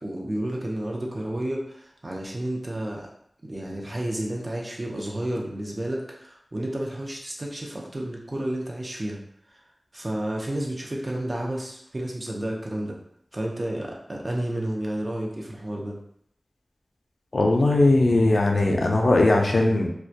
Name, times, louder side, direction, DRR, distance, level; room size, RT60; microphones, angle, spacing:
voice 1, 0.0-3.1 3.4-9.2 9.9-13.0 13.3-16.0, right 1 dB, 45° right, -1 dB, 0.5 m, -31 dB
voice 2, 17.3-19.9, left 2 dB, 85° left, 1 dB, 0.3 m, -19 dB
2.2 x 2.1 x 2.6 m, 0.69 s
wide cardioid pair, 55°, 0 cm